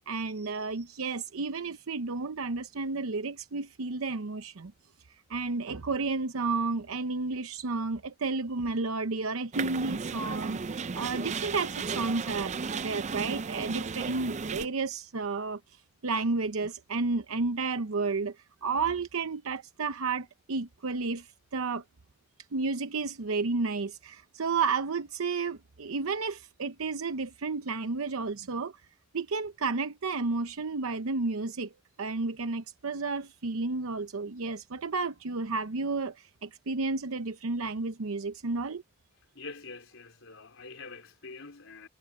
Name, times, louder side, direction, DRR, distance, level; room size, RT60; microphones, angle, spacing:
voice 1, 0.0-4.7 5.3-15.6 16.0-21.8 22.5-28.7 29.1-31.7 32.0-38.8, right 4 dB, 80° right, 0.8 m, -32 dB
sound 1, 9.5-14.7, right 5 dB, 35° right, 0.4 m, -34 dB
voice 2, 39.3-41.9, left 3 dB, 65° left, 4.3 m, -45 dB
head